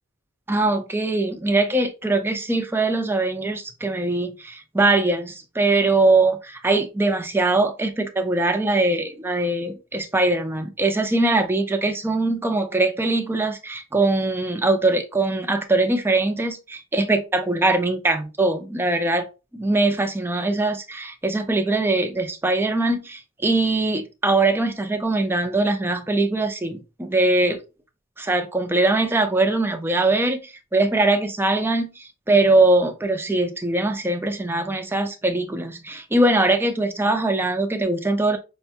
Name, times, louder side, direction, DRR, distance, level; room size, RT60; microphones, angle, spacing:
voice 1, 0.5-19.2 19.5-27.6 28.2-38.4, right 2 dB, 10° right, 0.5 m, -22 dB
5.4 x 2.2 x 2.7 m
head